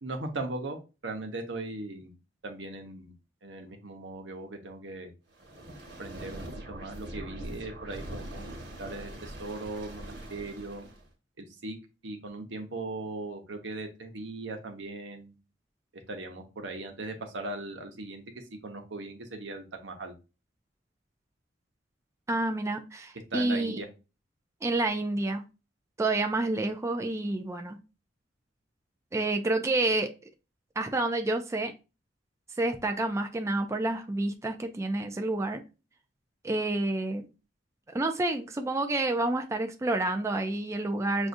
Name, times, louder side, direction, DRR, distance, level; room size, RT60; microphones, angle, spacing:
voice 1, 0.0-0.8 1.0-2.1 2.4-3.1 3.4-5.1 6.0-10.8 11.4-11.8 12.0-15.4 16.1-18.2 18.6-20.1 23.3-23.9, right 2 dB, 90° right, 0.9 m, -39 dB
sound 1, 5.3-11.1, right 1 dB, 65° right, 1.3 m, -42 dB
voice 2, 22.3-23.8 24.6-25.4 26.0-27.8 29.1-30.1 30.8-31.7 32.6-35.6 36.4-37.3 37.9-41.3, right 2 dB, 15° right, 0.4 m, -29 dB
6.2 x 2.4 x 2.6 m
head